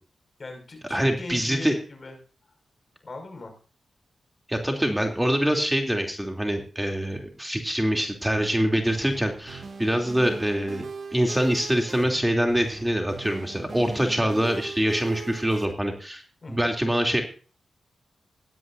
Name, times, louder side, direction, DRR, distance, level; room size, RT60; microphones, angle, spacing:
voice 1, 0.4-2.2 3.0-3.5 16.4-16.7, left 2 dB, 50° left, 5 dB, 5.9 m, -39 dB
voice 2, 0.9-1.8 4.5-10.8 11.1-16.2 16.5-17.2, equal, 10° right, 3 dB, 2.9 m, -24 dB
sound 1, 8.3-15.7, right 4 dB, 55° right, 2.2 m, -40 dB
17.0 x 12.5 x 2.6 m, 0.38 s
supercardioid pair, 45°, 0 cm